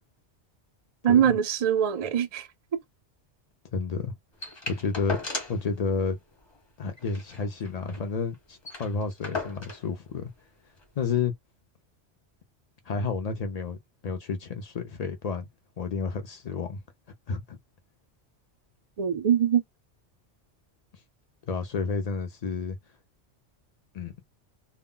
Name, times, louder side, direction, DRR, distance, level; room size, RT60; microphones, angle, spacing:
voice 1, 1.0-2.5 19.0-19.6, right 9 dB, 50° right, 0.4 m, -22 dB
voice 2, 3.7-4.1 4.7-5.2 5.5-6.2 6.8-10.3 11.0-11.3 12.9-13.8 14.0-15.5 15.8-16.8 17.3-17.6 21.5-22.8 23.9-24.1, left 5 dB, 60° left, 0.4 m, -30 dB
sound 1, 4.4-5.7 6.0-6.1 6.4-6.6 7.0-8.1 8.3-8.4 8.6-9.9 10.8-10.9, left 3 dB, 25° left, 0.9 m, -36 dB
2.1 x 2.1 x 3.6 m
omnidirectional pair, 1.2 m